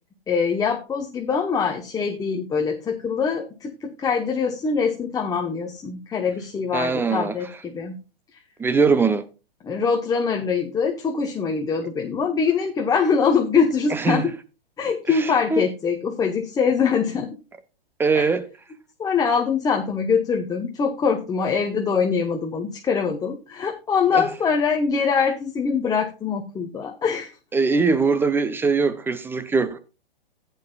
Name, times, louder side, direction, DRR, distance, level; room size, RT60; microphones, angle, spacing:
voice 1, 0.3-8.0 9.6-14.3 14.8-17.3 18.1-18.2 19.0-27.3, left 5 dB, 10° left, 1.0 m, -23 dB
voice 2, 6.7-7.4 8.6-9.2 13.9-14.3 15.1-15.6 18.0-18.5 24.1-24.2 27.5-29.8, right 4 dB, 5° right, 0.6 m, -21 dB
15.0 x 9.0 x 2.3 m
figure-of-eight pair, 115°, 29 cm